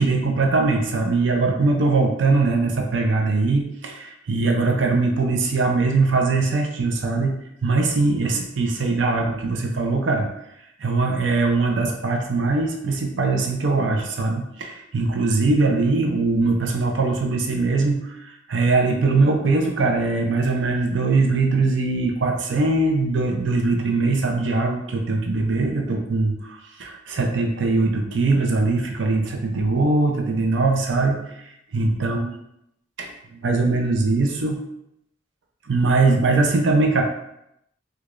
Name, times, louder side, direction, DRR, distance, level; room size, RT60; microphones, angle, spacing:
voice 1, 0.0-7.3 7.6-10.3 10.8-18.2 18.5-31.3 31.7-32.3 33.0-34.6 35.7-37.0, right 3 dB, 70° right, 2 dB, 0.5 m, -21 dB
4.7 x 2.3 x 2.4 m, 0.80 s
head